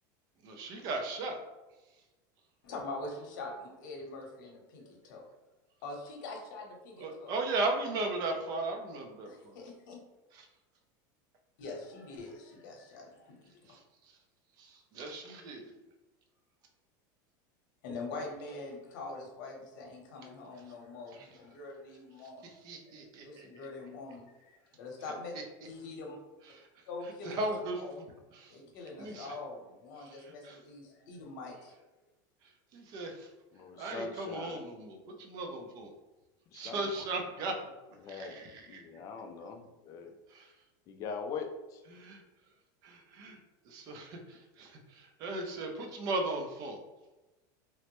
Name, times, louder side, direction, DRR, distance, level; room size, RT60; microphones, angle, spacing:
voice 1, 0.4-1.4 7.0-9.6 10.3-10.5 13.7-13.8 14.6-15.7 21.1-21.3 22.4-23.5 26.5-26.6 27.0-28.0 28.3-28.6 29.0-29.4 30.0-30.6 32.7-33.3 33.8-35.9 36.5-37.5 38.1-38.8 40.3-40.5 41.9-42.2 42.8-43.4 43.7-46.8, right 2 dB, 40° right, 3 dB, 0.5 m, -37 dB
voice 2, 2.6-5.2 5.8-7.3 9.2-10.0 11.6-13.8 17.8-22.5 22.9-23.0 23.2-25.3 25.6-26.2 26.9-27.5 27.8-27.9 28.5-31.8, left 3 dB, 70° left, 0 dB, 0.8 m, -44 dB
voice 3, 33.5-34.6 36.5-37.1 38.0-40.2 40.9-41.8, left 5 dB, 30° left, 5 dB, 0.3 m, -42 dB
3.1 x 2.1 x 2.9 m, 1.1 s
supercardioid pair, 160°, 11 cm